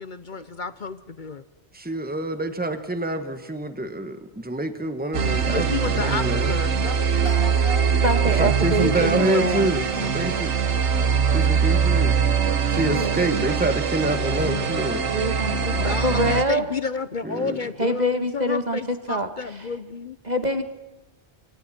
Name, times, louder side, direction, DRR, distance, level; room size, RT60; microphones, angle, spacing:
voice 1, 0.0-1.4 5.4-6.8 8.9-10.4 14.1-14.7 15.7-20.2, left 5 dB, 50° left, 13 dB, 0.9 m, -31 dB
voice 2, 1.7-5.7 5.9-6.5 8.4-10.5 11.3-12.1 12.7-15.0 17.2-17.6, right 1 dB, 10° right, 8 dB, 1.5 m, -26 dB
sound 1, 5.1-16.4, right 6 dB, 85° right, 1.5 m, -22 dB
voice 3, 6.8-7.9 15.6-16.5, equal, 25° left, 2 dB, 3.6 m, -36 dB
voice 4, 8.0-9.7 12.8-13.4 15.1-16.6 17.8-19.3 20.3-20.6, right 1 dB, 40° right, 7 dB, 1.9 m, -25 dB
26.5 x 25.0 x 4.4 m, 1.0 s
omnidirectional pair, 1.1 m